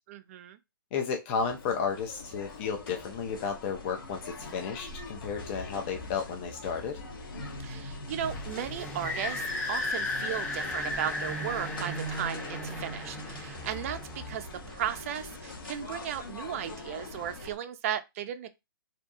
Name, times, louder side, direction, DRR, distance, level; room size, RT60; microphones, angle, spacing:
voice 1, 0.1-0.6 7.6-18.5, right 10 dB, 40° right, 0.4 m, -36 dB
voice 2, 0.9-7.0, left 6 dB, 30° left, 0.4 m, -33 dB
sound 1, 1.3-17.6, left 2 dB, 70° left, 1.0 m, -43 dB
sound 2, 8.2-15.5, left 1 dB, 10° left, 0.8 m, -35 dB
2.6 x 2.2 x 2.6 m
figure-of-eight pair, 130°, 12 cm